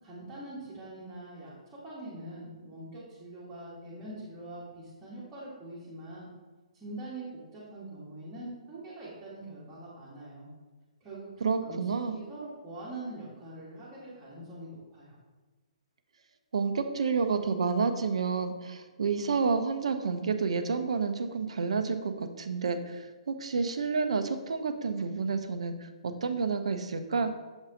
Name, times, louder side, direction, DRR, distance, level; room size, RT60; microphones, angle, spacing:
voice 1, 0.0-6.3 6.7-7.3 7.5-10.5 11.0-15.2, right 1 dB, 15° right, -10 dB, 1.6 m, -43 dB
voice 2, 11.4-12.2 16.5-27.3, right 5 dB, 60° right, 9 dB, 0.6 m, -30 dB
7.0 x 4.0 x 3.9 m, 1.3 s
figure-of-eight pair, 125°, 4 cm